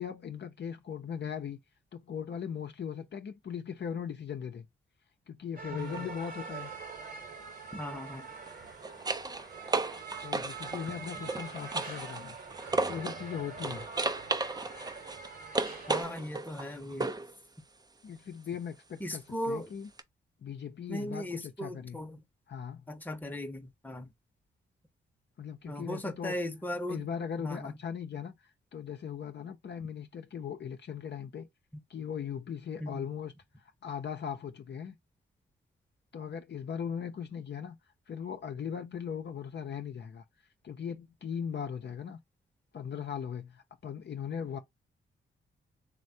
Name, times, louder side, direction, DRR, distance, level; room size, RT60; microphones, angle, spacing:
voice 1, 0.0-1.6 1.9-4.7 5.3-6.7 10.2-12.4 12.9-13.9 18.0-19.9 20.4-22.0 22.5-22.8 25.4-26.4 26.9-28.3 28.7-31.5 31.9-33.3 33.8-35.0 36.1-37.8 38.1-40.2 40.6-42.2 42.7-44.6, left 7 dB, 55° left, 0.7 m, -39 dB
sound 1, 5.6-16.0, right 4 dB, 45° right, 1.0 m, -44 dB
voice 2, 5.7-6.1 7.7-8.3 15.9-17.1 19.0-19.7 20.9-22.2 22.9-24.1 25.7-27.1 27.4-27.8 32.8-33.1, left 1 dB, 10° left, 0.8 m, -38 dB
sound 2, 5.8-6.0 8.3-13.3 13.6-17.3 20.0-20.1, right 3 dB, 20° right, 0.5 m, -35 dB
3.2 x 2.2 x 2.7 m
cardioid pair, 60°, 21 cm